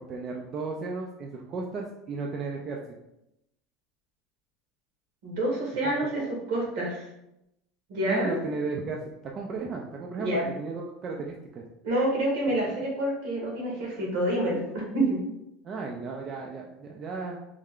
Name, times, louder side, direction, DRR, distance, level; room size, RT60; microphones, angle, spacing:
voice 1, 0.0-2.8 5.8-6.0 8.1-11.6 15.6-17.4, right 4 dB, 40° right, 0 dB, 0.4 m, -35 dB
voice 2, 5.2-7.1 7.9-8.4 10.2-10.5 11.8-15.2, right 1 dB, 75° right, -2 dB, 1.4 m, -27 dB
3.2 x 2.3 x 3.6 m, 0.86 s
supercardioid pair, 115°, 0 cm